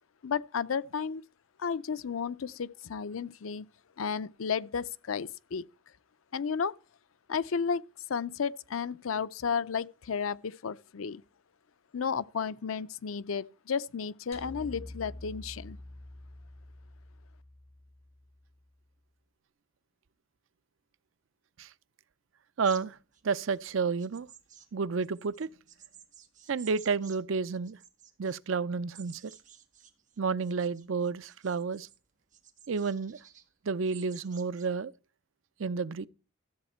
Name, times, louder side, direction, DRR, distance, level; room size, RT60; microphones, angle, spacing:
voice 1, 0.2-1.2 1.6-3.7 4.0-5.6 6.3-6.7 7.3-7.8 8.1-11.2 11.9-15.8, left 6 dB, 90° left, 0.5 m, -33 dB
sound 1, 14.3-18.7, left 1 dB, 30° left, 1.2 m, -47 dB
sound 2, 22.6-27.2 27.5-28.4 28.9-32.0 32.3-33.5 33.9-34.7, right 9 dB, 40° right, 1.5 m, -54 dB
voice 2, 22.6-23.0 23.2-24.3 24.7-25.5 26.5-27.8 28.2-29.3 30.2-31.9 32.7-33.2 33.6-34.9 35.6-36.1, right 5 dB, 75° right, 0.5 m, -30 dB
13.5 x 8.0 x 4.3 m
head